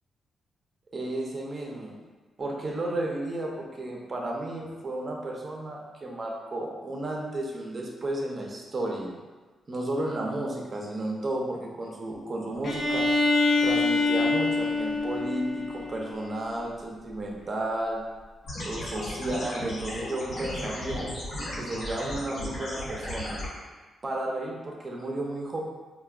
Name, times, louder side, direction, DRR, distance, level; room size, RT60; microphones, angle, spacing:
voice 1, 0.9-1.9 2.4-9.2 9.7-13.1 13.6-18.2 18.6-21.1 21.6-23.4 24.0-25.6, right 1 dB, 35° right, -1 dB, 0.5 m, -33 dB
Bowed string instrument, 12.6-16.4, left 3 dB, 45° left, 0.5 m, -25 dB
sound 1, 18.5-23.5, left 1 dB, 70° left, 1.1 m, -35 dB
4.2 x 2.1 x 2.4 m, 1.4 s
cardioid pair, 125°, 0 cm